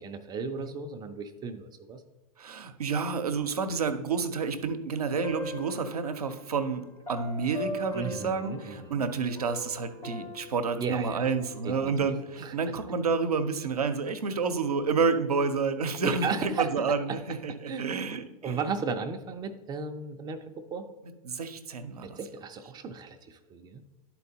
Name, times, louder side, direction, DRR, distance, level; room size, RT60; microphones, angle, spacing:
voice 1, 0.0-2.0 7.9-9.0 10.8-11.3 11.6-12.1 12.4-12.5 16.2-17.2 17.7-17.9 18.4-20.9 22.0-23.8, right 5 dB, 20° right, 6 dB, 0.5 m, -35 dB
voice 2, 2.4-18.6 21.2-22.2, right 5 dB, 80° right, 9 dB, 0.7 m, -29 dB
sound 1, 5.0-6.4 7.1-9.1 9.4-12.3, left 1 dB, 85° left, 2.1 m, -41 dB
11.0 x 4.5 x 2.8 m, 1.1 s
hypercardioid pair, 100°, 19 cm